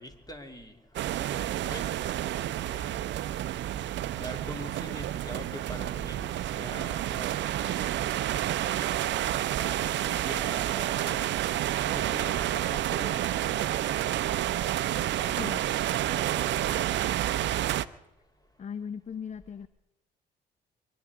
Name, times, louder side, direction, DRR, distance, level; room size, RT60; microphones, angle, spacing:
voice 1, 0.0-2.2 2.6-3.1 4.1-7.9 8.4-11.3 11.8-15.5 16.4-16.8, equal, 20° left, 6 dB, 2.8 m, -44 dB
sound 1, 0.9-17.8, right 12 dB, 60° right, 0.6 m, -29 dB
voice 2, 18.6-19.7, left 7 dB, 35° left, 16 dB, 0.6 m, -37 dB
23.5 x 10.0 x 4.8 m, 0.89 s
hypercardioid pair, 55°, 21 cm